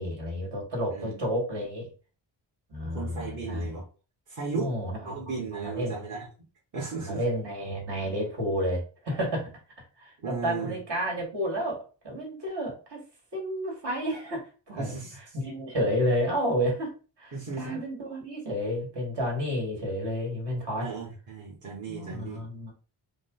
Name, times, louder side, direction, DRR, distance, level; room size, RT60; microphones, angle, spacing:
voice 1, 0.0-1.9 2.7-3.8 4.5-5.2 5.5-6.1 7.0-9.5 10.0-13.0 13.3-20.9 21.9-22.7, equal, 60° right, -1 dB, 2.1 m, -31 dB
voice 2, 2.8-3.8 4.3-4.7 5.0-6.2 6.7-7.2 10.2-10.8 14.8-15.2 17.3-17.8 20.8-22.4, right 4 dB, 40° right, -6 dB, 1.3 m, -35 dB
4.8 x 2.2 x 3.8 m, 0.35 s
wide cardioid pair, 155°, 45 cm